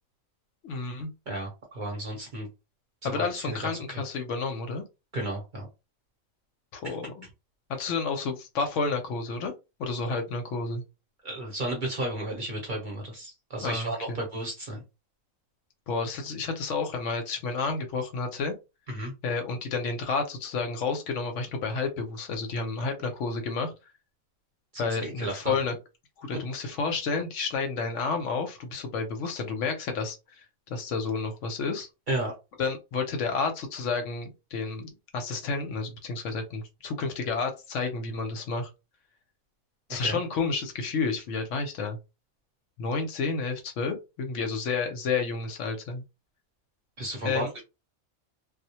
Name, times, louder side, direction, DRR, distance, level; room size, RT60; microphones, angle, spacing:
voice 1, 0.6-1.1 3.0-4.8 6.7-7.3 7.7-9.5 9.8-10.8 13.6-14.2 15.9-18.5 19.2-23.7 24.8-25.8 26.2-30.4 30.7-31.9 32.6-38.7 39.9-42.0 42.8-46.0 47.2-47.5, left 4 dB, 70° left, 6 dB, 0.9 m, -30 dB
voice 2, 1.3-2.5 3.0-3.7 5.1-5.7 6.8-6.9 11.2-14.8 18.9-19.1 24.7-25.6 32.1-32.3 39.9-40.2 47.0-47.6, right 1 dB, 45° right, 0 dB, 0.8 m, -33 dB
2.2 x 2.0 x 2.8 m, 0.26 s
omnidirectional pair, 1.4 m